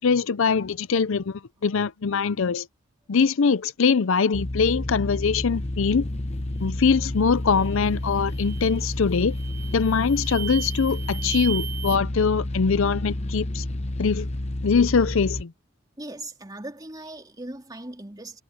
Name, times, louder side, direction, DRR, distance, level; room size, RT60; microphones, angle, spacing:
voice 1, 0.0-2.7 3.1-6.0 6.6-9.3 9.7-13.6 14.0-14.3 14.6-15.5, left 5 dB, 65° left, 0.5 m, -22 dB
sound 1, 4.3-15.4, left 1 dB, 30° left, 0.9 m, -30 dB
sound 2, 7.5-7.8 8.3-8.8 9.3-12.0, right 10 dB, 40° right, 0.6 m, -36 dB
voice 2, 16.0-18.4, right 1 dB, 15° right, 3.7 m, -39 dB
head